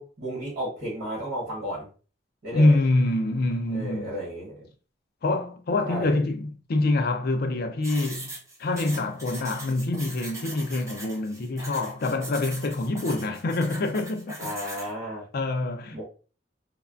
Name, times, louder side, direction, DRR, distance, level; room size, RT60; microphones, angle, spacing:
voice 1, 0.0-1.9 2.4-2.8 3.7-4.7 5.8-6.2 14.4-15.2 15.9-16.0, equal, 55° right, 1.4 m, -33 dB
voice 2, 2.5-4.2 5.2-8.3 8.6-14.5 15.3-16.0, left 2 dB, 55° left, 0.4 m, -25 dB
sound 1, 7.8-14.9, right 1 dB, 15° right, 0.7 m, -40 dB
3.2 x 2.0 x 2.4 m
head